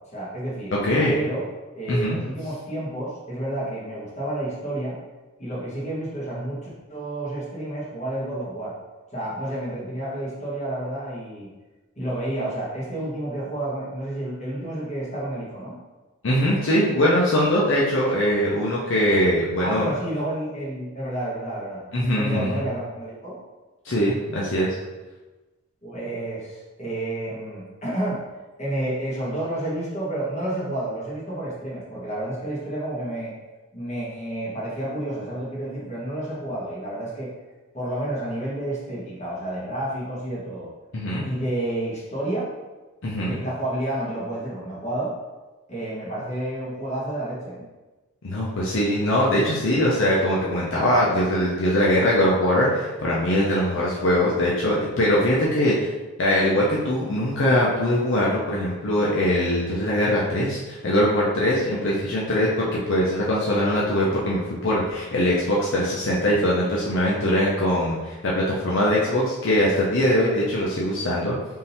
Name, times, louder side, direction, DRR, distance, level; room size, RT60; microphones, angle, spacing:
voice 1, 0.1-0.7 1.1-1.4 1.7-5.0 5.4-8.7 9.1-11.5 12.0-15.8 19.6-21.8 22.1-23.4 25.8-28.2 28.6-33.3 33.7-37.3 37.7-40.7 41.2-42.5 43.3-45.1 45.7-47.6, right 1 dB, 30° left, -7 dB, 1.3 m, -30 dB
voice 2, 0.8-1.2 1.9-2.2 16.2-19.9 21.9-22.6 23.8-24.7 40.9-41.2 43.0-43.4 48.2-55.9 56.2-71.4, equal, 55° left, -5 dB, 0.6 m, -22 dB
3.7 x 2.7 x 4.2 m, 1.2 s
head